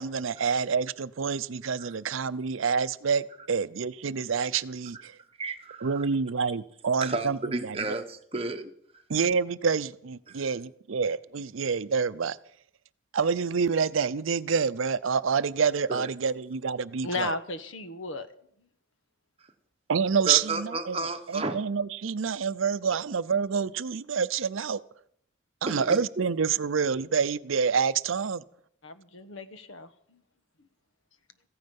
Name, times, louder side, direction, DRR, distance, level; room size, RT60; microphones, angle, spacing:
voice 1, 0.0-5.2 5.8-7.8 9.1-12.4 13.1-17.3 19.9-24.8 25.6-28.4, right 6 dB, 80° right, 15 dB, 0.6 m, -27 dB
voice 2, 5.4-6.0 7.0-8.7 10.3-10.4 15.9-16.0 20.3-21.5 25.7-26.0, right 3 dB, 30° right, 5 dB, 1.2 m, -32 dB
voice 3, 17.0-18.3 28.8-30.2, left 2 dB, 75° left, 11 dB, 1.1 m, -35 dB
15.5 x 15.0 x 5.4 m, 0.68 s
head